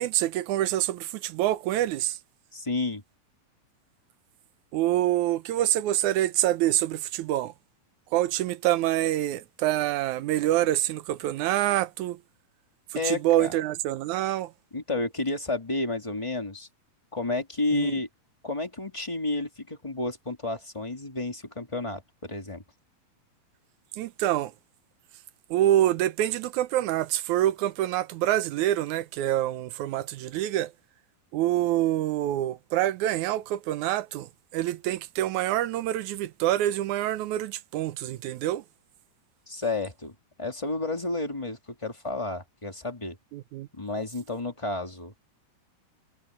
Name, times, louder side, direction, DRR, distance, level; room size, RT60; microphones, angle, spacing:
voice 1, 0.0-2.2 4.7-7.5 8.1-12.2 13.1-14.5 17.7-18.0 24.0-24.5 25.5-30.7 31.3-38.6 43.3-43.7, right 13 dB, 70° right, 2.0 m, -26 dB
voice 2, 2.5-3.0 12.9-13.6 14.7-16.7 17.1-18.1 18.4-22.6 39.5-43.2 43.7-45.1, left 2 dB, 10° left, 1.9 m, -31 dB
omnidirectional pair, 4.0 m